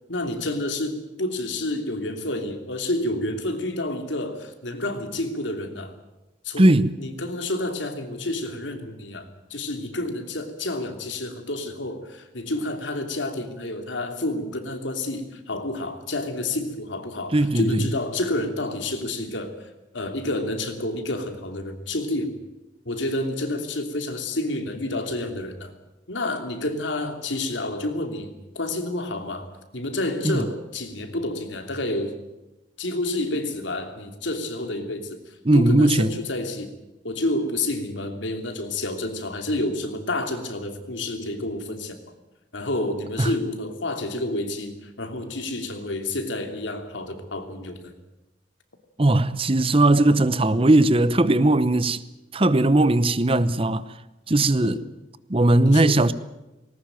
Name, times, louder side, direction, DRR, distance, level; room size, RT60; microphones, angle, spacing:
voice 1, 0.1-5.9 6.4-19.7 19.9-22.4 22.8-25.7 26.1-29.5 29.7-32.1 32.8-36.7 37.0-42.0 42.5-47.9 54.6-54.8 55.6-56.0, left 2 dB, 85° left, 3.0 m, -29 dB
voice 2, 6.6-7.0 17.3-17.9 30.2-30.5 35.4-36.1 43.2-43.3 49.0-52.0 52.3-53.9 54.3-54.8 55.3-56.1, right 2 dB, 30° right, 0.9 m, -18 dB
20.0 x 19.0 x 9.1 m
head